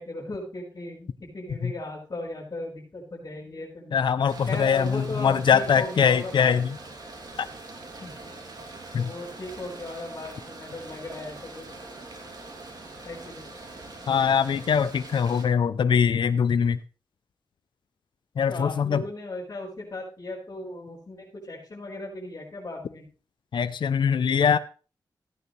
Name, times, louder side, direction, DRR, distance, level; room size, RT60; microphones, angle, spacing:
voice 1, 0.0-4.0 4.5-6.6 8.0-8.1 8.9-11.7 13.0-13.5 18.5-23.1, left 2 dB, 45° left, 4.7 m, -37 dB
voice 2, 3.9-6.8 8.9-9.1 14.1-16.8 18.4-19.0 23.5-24.6, left 7 dB, 80° left, 0.6 m, -22 dB
sound 1, 4.3-15.4, right 2 dB, 55° right, 2.9 m, -43 dB
15.0 x 9.3 x 3.3 m
wide cardioid pair, 90°, 8 cm